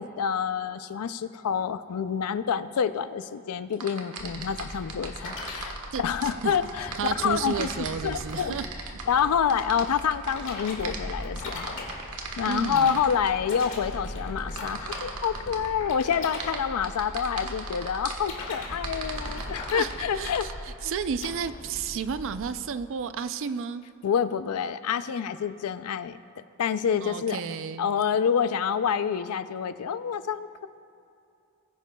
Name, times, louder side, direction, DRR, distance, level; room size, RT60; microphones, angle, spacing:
voice 1, 0.0-7.7 8.0-8.6 9.1-11.8 12.4-20.5 20.8-20.9 24.0-26.2 26.6-27.4 27.8-30.7, left 7 dB, 75° left, 13 dB, 0.4 m, -27 dB
sound 1, 3.7-13.3 14.6-15.7 16.1-18.3 18.8-20.5, right 5 dB, 80° right, 1.3 m, -38 dB
sound 2, 4.2-22.5, left 1 dB, 60° left, 1.9 m, -39 dB
voice 2, 7.0-8.7 9.5-9.6 12.5-13.0 19.4-19.9 20.2-23.8 27.0-27.9, right 6 dB, 60° right, 12 dB, 0.4 m, -32 dB
20.5 x 9.9 x 2.3 m, 2.6 s
head